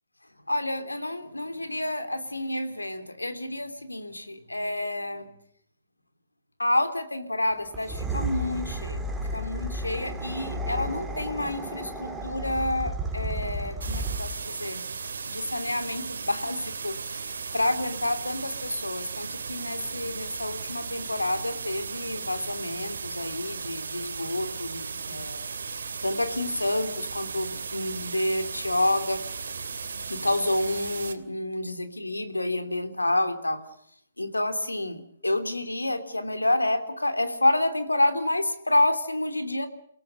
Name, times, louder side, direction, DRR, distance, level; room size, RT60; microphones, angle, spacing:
voice 1, 0.5-5.3 6.6-9.0 9.3-14.8 15.3-25.4 26.0-29.5 30.1-33.6 34.2-39.7, left 1 dB, 85° left, 9 dB, 3.1 m, -29 dB
sound 1, 7.7-14.4, right 1 dB, 5° right, 3.8 m, -33 dB
sound 2, 13.8-31.2, right 5 dB, 65° right, 2.7 m, -36 dB
30.0 x 17.5 x 6.7 m, 0.67 s
figure-of-eight pair, 130°, 0 cm